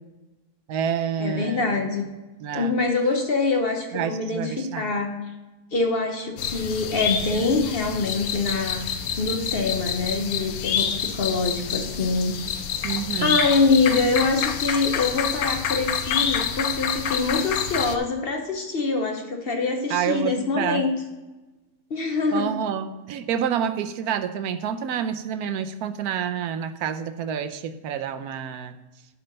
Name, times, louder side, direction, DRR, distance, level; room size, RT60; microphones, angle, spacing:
voice 1, 0.7-1.9 2.4-2.7 3.9-4.9 12.8-13.4 19.9-20.8 22.3-28.7, right 8 dB, 70° right, 10 dB, 1.1 m, -28 dB
voice 2, 1.2-2.1 2.5-5.2 5.7-8.9 9.2-12.4 13.2-21.0 21.9-22.5, left 3 dB, 40° left, 3 dB, 0.9 m, -24 dB
sound 1, 6.4-18.0, left 7 dB, 70° left, 1.1 m, -27 dB
11.5 x 4.4 x 5.2 m, 1.1 s
omnidirectional pair, 1.8 m